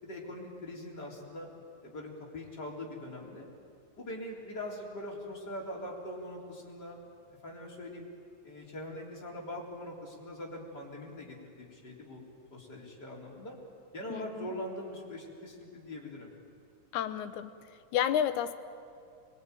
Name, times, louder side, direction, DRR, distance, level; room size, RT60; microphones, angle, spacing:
voice 1, 0.0-1.5 1.8-3.5 4.0-7.0 7.4-8.1 8.4-12.2 12.5-13.6 13.9-16.3, left 1 dB, 30° left, -3 dB, 4.1 m, -42 dB
voice 2, 14.1-14.5 16.9-17.5 17.9-18.5, left 10 dB, 75° left, 10 dB, 2.3 m, -30 dB
24.0 x 22.0 x 9.2 m, 2.4 s
omnidirectional pair, 3.7 m